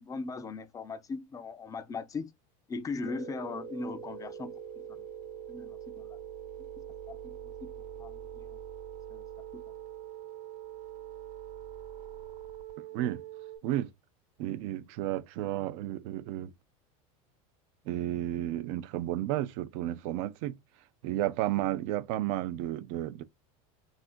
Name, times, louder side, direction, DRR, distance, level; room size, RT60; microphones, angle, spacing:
voice 1, 0.0-2.3 2.7-4.5 5.5-5.8 7.1-7.4 8.0-8.5 9.1-9.2, left 4 dB, 20° left, 0.4 m, -38 dB
sound 1, 3.0-13.6, right 9 dB, 50° right, 0.9 m, -43 dB
voice 2, 14.4-16.5 17.9-20.6 21.0-23.2, right 14 dB, 65° right, 0.4 m, -32 dB
3.6 x 2.4 x 2.4 m
supercardioid pair, 115°, 18 cm